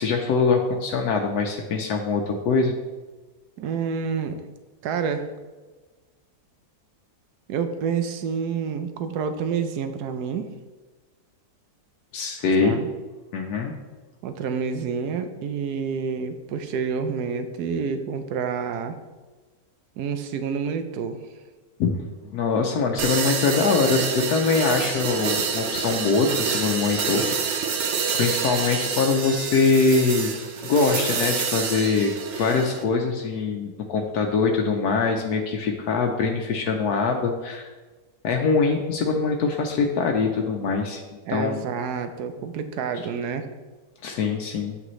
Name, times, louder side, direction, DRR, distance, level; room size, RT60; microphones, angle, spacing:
voice 1, 0.0-2.7 12.1-12.8 13.3-13.7 21.8-21.9 22.2-27.6 28.2-30.3 30.6-37.7 38.2-41.0 41.3-41.6 44.0-44.8, left 4 dB, 80° left, 2 dB, 1.2 m, -23 dB
voice 2, 3.6-4.5 4.8-5.2 7.5-10.5 12.6-12.9 14.2-19.0 20.0-21.2 41.3-43.5, right 6 dB, 85° right, 9 dB, 1.2 m, -28 dB
sound 1, 23.0-32.8, right 6 dB, 60° right, 0.9 m, -27 dB
8.5 x 6.0 x 3.1 m, 1.3 s
omnidirectional pair, 1.6 m